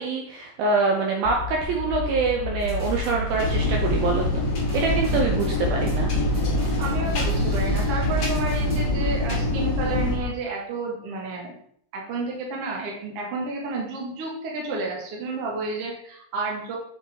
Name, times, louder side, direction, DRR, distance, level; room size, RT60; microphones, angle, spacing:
voice 1, 0.0-4.2 4.7-6.1, right 4 dB, 75° right, 0 dB, 2.3 m, -25 dB
sound 1, 1.2-10.4, left 10 dB, 85° left, 2.7 m, -32 dB
sound 2, 2.6-9.0, right 4 dB, 35° right, 1.1 m, -34 dB
sound 3, 3.4-10.2, left 1 dB, 60° left, 1.3 m, -25 dB
voice 2, 6.8-11.5 11.9-16.8, right 3 dB, 60° right, -1 dB, 1.6 m, -31 dB
7.4 x 5.7 x 3.5 m, 0.66 s
omnidirectional pair, 5.0 m